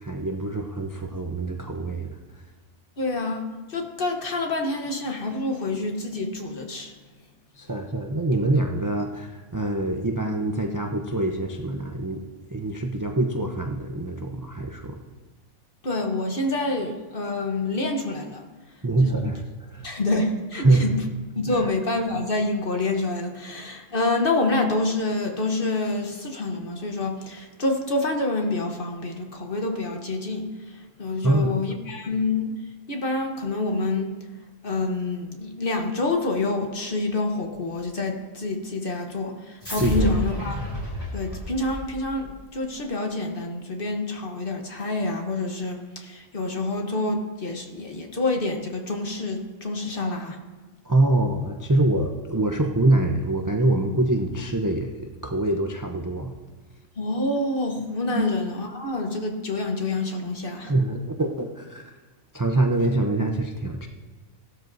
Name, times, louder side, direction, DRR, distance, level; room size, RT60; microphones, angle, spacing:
voice 1, 0.0-2.1 7.6-12.2 12.5-15.0 18.8-19.4 19.7-19.9 20.5-21.0 21.5-21.7 31.2-31.5 39.8-40.1 50.9-54.9 55.2-56.3 58.1-58.3 60.7-61.8 62.3-63.9, right 2 dB, 30° right, 2 dB, 0.3 m, -24 dB
voice 2, 3.0-6.9 15.8-18.5 19.0-19.1 19.8-21.0 21.4-32.5 32.9-34.1 34.6-40.6 41.1-50.4 57.0-60.7, left 2 dB, 45° left, 3 dB, 1.2 m, -27 dB
sound 1, 39.6-42.3, equal, 15° left, 2.9 m, -30 dB
16.0 x 12.0 x 2.6 m, 1.3 s
omnidirectional pair, 1.4 m